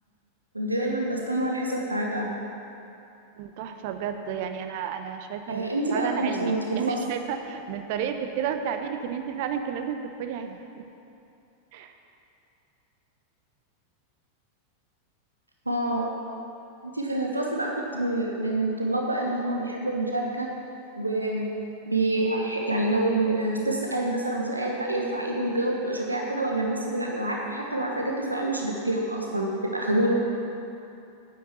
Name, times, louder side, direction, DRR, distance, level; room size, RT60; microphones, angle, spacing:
voice 1, 0.5-2.3 5.5-7.0 15.7-16.1 16.8-20.5 20.9-21.5 21.9-30.1, right 1 dB, 85° right, -1 dB, 1.2 m, -27 dB
voice 2, 3.4-10.8 11.7-11.9, right 7 dB, 50° right, 7 dB, 0.9 m, -32 dB
9.7 x 8.4 x 7.0 m, 2.8 s
figure-of-eight pair, 90°, 0 cm